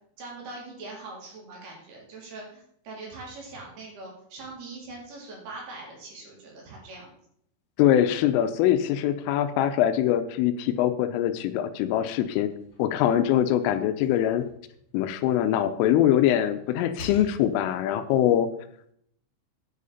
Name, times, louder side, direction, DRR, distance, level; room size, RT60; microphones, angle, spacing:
voice 1, 0.2-7.1, right 3 dB, 55° right, -2 dB, 4.8 m, -42 dB
voice 2, 7.8-12.5 12.8-14.4 14.9-18.5, left 11 dB, 85° left, 10 dB, 3.3 m, -23 dB
sound 1, 12.6-15.6 16.1-17.9, left 2 dB, 30° left, 3.8 m, -48 dB
10.0 x 9.3 x 4.1 m, 0.68 s
omnidirectional pair, 5.8 m